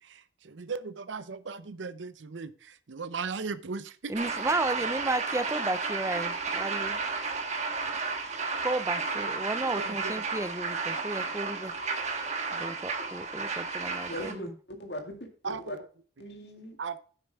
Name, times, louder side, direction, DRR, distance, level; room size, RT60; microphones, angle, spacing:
voice 1, 0.0-4.3 9.7-10.2 15.4-15.8 16.8-17.0, right 5 dB, 75° right, 0.7 m, -37 dB
voice 2, 4.1-7.0 8.6-11.7 12.5-14.5, right 2 dB, 15° right, 0.4 m, -33 dB
sound 1, 4.1-14.3, right 4 dB, 40° right, 1.4 m, -32 dB
voice 3, 14.1-15.8 16.2-16.8, equal, 60° left, 2.1 m, -40 dB
9.4 x 7.9 x 3.5 m
head